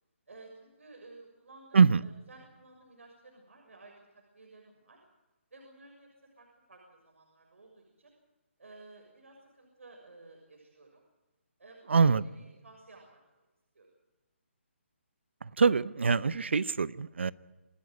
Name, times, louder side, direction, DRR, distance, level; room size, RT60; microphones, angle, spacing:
voice 1, 0.3-5.0 5.5-6.1 6.4-8.1 8.6-11.0 11.6-12.1 12.3-13.2 13.7-13.9, right 2 dB, 90° right, 0 dB, 6.7 m, -54 dB
voice 2, 11.9-12.2 15.4-17.3, right 5 dB, 60° right, 19 dB, 0.7 m, -24 dB
27.5 x 13.0 x 9.4 m, 1.1 s
hypercardioid pair, 175°, 7 cm